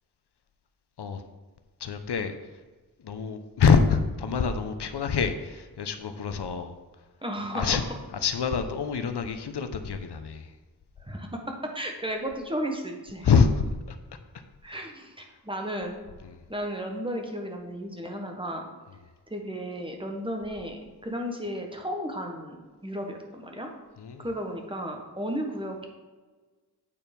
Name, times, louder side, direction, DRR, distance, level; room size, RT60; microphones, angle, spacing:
voice 1, 1.8-2.5 3.0-6.8 7.5-7.8 8.2-10.5 13.2-13.5 13.9-14.0 14.7-14.8 16.2-16.4 24.0-24.3, left 6 dB, 85° left, 8 dB, 0.7 m, -26 dB
voice 2, 7.2-7.8 11.0-13.3 14.6-15.2 15.4-16.0 16.5-18.7 19.3-23.7 24.2-25.9, equal, 15° right, 2 dB, 1.2 m, -34 dB
8.6 x 4.6 x 5.2 m, 1.3 s
wide cardioid pair, 85°, 40 cm